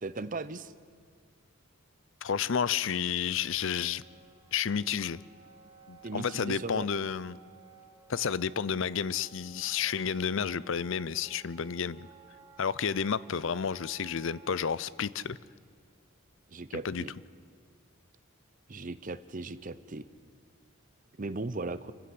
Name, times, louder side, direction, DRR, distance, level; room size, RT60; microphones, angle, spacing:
voice 1, 0.0-0.7 6.0-6.9 16.5-17.1 18.7-20.1 21.2-21.9, right 3 dB, 35° right, 14 dB, 0.7 m, -37 dB
voice 2, 2.2-4.0 4.5-5.2 5.9-7.4 8.1-12.1 12.6-15.4 16.8-17.0, left 7 dB, 60° left, 20 dB, 0.5 m, -31 dB
Wind instrument woodwind instrument, 2.7-14.8, right 5 dB, 15° right, 3.6 m, -57 dB
26.5 x 15.5 x 7.9 m, 2.1 s
head